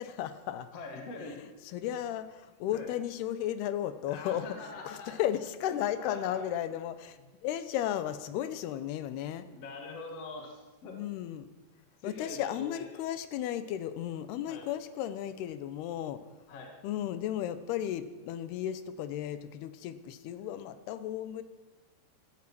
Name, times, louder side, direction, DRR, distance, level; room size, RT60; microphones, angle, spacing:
voice 1, 0.0-0.7 1.7-4.5 4.8-9.4 10.9-11.5 12.0-16.2 16.8-21.4, left 11 dB, 90° left, 13 dB, 3.0 m, -34 dB
voice 2, 0.7-1.4 2.7-2.9 4.0-5.2 6.1-6.4 9.5-11.0 11.8-13.0 14.5-14.7 16.5-16.7 20.3-20.4, left 3 dB, 45° left, 2 dB, 2.5 m, -44 dB
16.0 x 13.5 x 6.1 m, 1.2 s
omnidirectional pair, 4.5 m